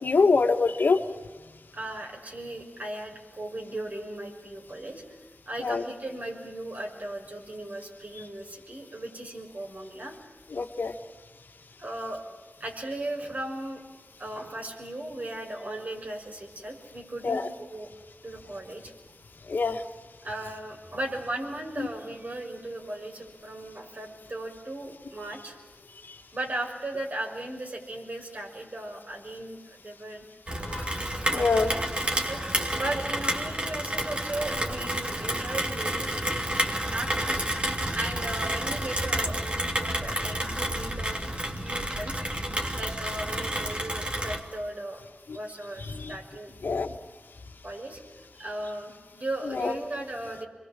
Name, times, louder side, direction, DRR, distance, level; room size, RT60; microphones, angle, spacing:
voice 1, 0.0-1.0 5.6-5.8 10.5-10.9 17.2-17.4 19.5-19.8 30.7-30.9 31.3-31.7 46.0-46.1 46.6-46.9 49.6-49.7, left 4 dB, 80° left, 6 dB, 1.5 m, -24 dB
voice 2, 1.7-5.0 5.5-10.1 11.8-12.2 12.6-13.8 14.2-17.9 18.2-18.9 20.2-25.6 26.3-30.2 31.3-32.4 32.7-36.1 36.8-37.4 37.9-42.4 42.7-45.0 45.3-46.5 47.6-48.0 48.3-50.5, right 1 dB, 55° right, 1 dB, 6.0 m, -37 dB
Rain, 30.5-44.4, right 1 dB, 35° right, 3.0 m, -30 dB
26.5 x 22.0 x 7.5 m, 1.3 s
cardioid pair, 40°, 3 cm